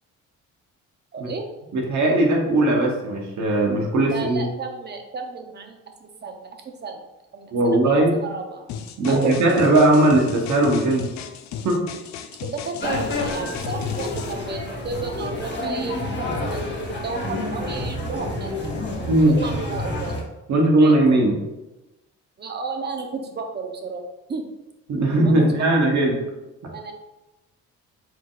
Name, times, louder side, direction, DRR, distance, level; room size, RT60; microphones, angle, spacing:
voice 1, 1.1-1.4 4.0-7.0 7.3-8.7 9.0-9.6 12.4-18.6 19.2-20.2 20.8-20.9 22.4-24.0 24.3-24.5 25.2-25.5 26.7-26.9, right 4 dB, 35° right, 4 dB, 0.7 m, -32 dB
voice 2, 1.7-4.5 7.5-8.2 9.0-11.1 11.6-11.8 19.1-19.4 20.5-21.4 24.9-26.2, right 2 dB, 70° right, 0 dB, 1.2 m, -18 dB
sound 1, 8.7-14.3, left 8 dB, 65° left, 0.4 m, -35 dB
sound 2, 12.8-20.2, left 2 dB, 35° left, 1.0 m, -29 dB
4.7 x 3.8 x 2.5 m, 1.0 s
cardioid pair, 90°, 30 cm